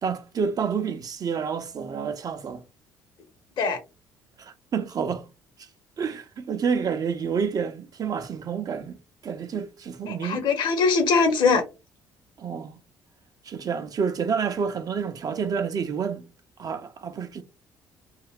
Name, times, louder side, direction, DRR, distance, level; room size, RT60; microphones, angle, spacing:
voice 1, 0.0-2.6 4.4-5.3 5.6-5.7 6.0-9.0 9.2-10.4 12.4-12.8 13.4-16.3 16.6-17.4, right 6 dB, 40° right, 0.5 m, -29 dB
voice 2, 10.1-11.6, left 4 dB, 60° left, 1.0 m, -21 dB
2.4 x 2.2 x 3.4 m
hypercardioid pair, 55°, 9 cm